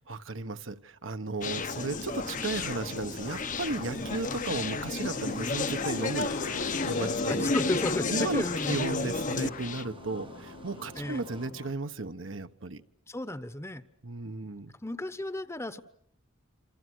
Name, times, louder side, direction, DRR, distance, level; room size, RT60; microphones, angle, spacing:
voice 1, 0.1-7.5 8.1-12.8 14.0-14.7, right 3 dB, 65° right, 9 dB, 1.2 m, -35 dB
Conversation, 1.4-9.8, left 4 dB, 40° left, 0.9 m, -32 dB
sound 1, 1.7-11.5, right 2 dB, 25° right, 0.9 m, -48 dB
sound 2, 5.7-11.7, left 4 dB, 85° left, 1.0 m, -44 dB
voice 2, 7.3-9.1 11.0-11.2 13.1-13.8 14.8-15.8, left 1 dB, 15° left, 13 dB, 1.0 m, -34 dB
27.5 x 27.5 x 6.3 m, 0.73 s
head